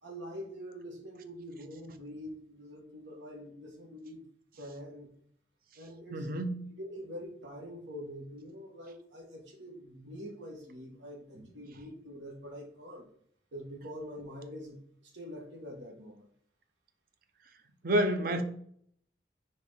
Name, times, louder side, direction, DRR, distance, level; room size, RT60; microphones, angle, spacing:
voice 1, 0.0-4.2 4.6-5.1 5.8-6.3 6.8-13.0 13.5-16.3, equal, 85° right, 1.5 m, -45 dB
voice 2, 6.1-6.7 17.8-18.4, right 1 dB, 55° right, 0.7 m, -29 dB
4.6 x 3.7 x 5.5 m
head